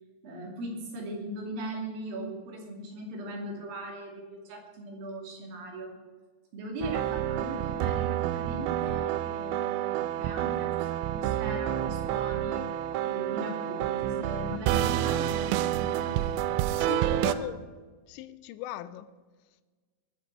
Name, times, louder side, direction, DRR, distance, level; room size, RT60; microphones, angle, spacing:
voice 1, 0.2-6.0 6.5-12.6 13.0-16.9, right 1 dB, 55° right, 3.9 m, -39 dB
sound 1, 6.8-17.4, right 12 dB, 85° right, 2.8 m, -29 dB
voice 2, 16.7-17.7 18.1-19.1, left 12 dB, 90° left, 2.9 m, -39 dB
21.5 x 7.7 x 4.6 m
omnidirectional pair, 5.2 m